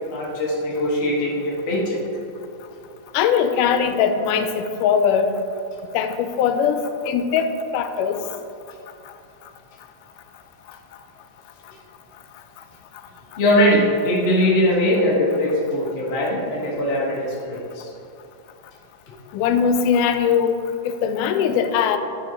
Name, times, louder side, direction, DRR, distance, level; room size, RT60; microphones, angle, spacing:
voice 1, 0.1-2.0 13.4-17.9, left 1 dB, 40° left, -4 dB, 0.8 m, -21 dB
voice 2, 3.1-5.3 5.9-8.4 19.3-20.6 20.8-22.0, left 7 dB, 90° left, 8 dB, 2.1 m, -20 dB
11.0 x 4.5 x 4.3 m, 2.6 s
omnidirectional pair, 3.6 m